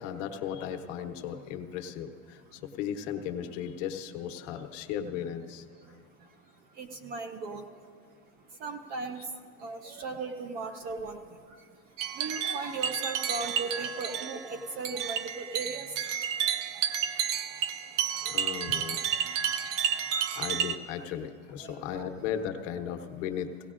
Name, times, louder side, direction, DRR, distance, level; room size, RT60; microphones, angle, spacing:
voice 1, 0.0-6.0 18.2-19.0 20.3-23.5, left 9 dB, 75° left, 6 dB, 1.0 m, -36 dB
voice 2, 5.8-18.7 19.0-20.4 21.6-22.1, right 3 dB, 25° right, 8 dB, 0.3 m, -40 dB
sound 1, 12.0-20.8, right 8 dB, 80° right, 0.7 m, -31 dB
17.5 x 17.0 x 2.5 m, 2.1 s
cardioid pair, 170°, 38 cm